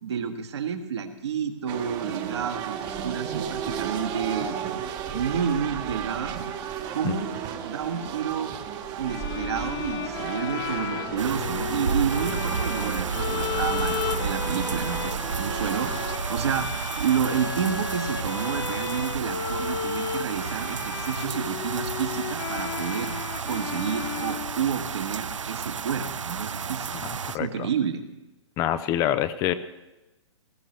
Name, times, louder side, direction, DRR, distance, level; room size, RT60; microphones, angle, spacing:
voice 1, 0.0-4.6 5.1-6.4 6.9-7.3 7.6-8.5 9.0-16.7 17.0-23.2 23.5-28.0, right 7 dB, 60° right, 6 dB, 1.7 m, -30 dB
sound 1, 1.7-16.2, right 8 dB, 25° right, 1.2 m, -34 dB
Bowed string instrument, 9.1-25.1, left 9 dB, 45° left, 1.5 m, -34 dB
sound 2, 11.2-27.4, right 6 dB, 75° right, 0.5 m, -32 dB
voice 2, 27.0-27.7 28.6-29.5, left 12 dB, 20° left, 12 dB, 0.5 m, -26 dB
19.5 x 14.5 x 3.2 m, 1.0 s
figure-of-eight pair, 125°, 16 cm